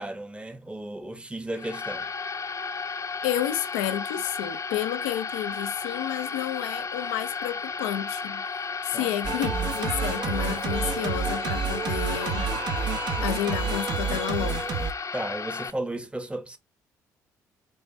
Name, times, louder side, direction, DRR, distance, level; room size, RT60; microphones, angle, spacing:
voice 1, 0.0-2.1 8.9-9.1 15.1-16.6, right 1 dB, 10° right, 1.2 m, -34 dB
sound 1, 1.5-15.7, left 5 dB, 35° left, 0.9 m, -33 dB
voice 2, 3.2-8.4 8.8-12.5 13.2-14.6, left 12 dB, 80° left, 0.7 m, -31 dB
Singing, 9.2-14.9, right 5 dB, 55° right, 1.7 m, -29 dB
5.5 x 4.3 x 4.1 m
hypercardioid pair, 50°, 9 cm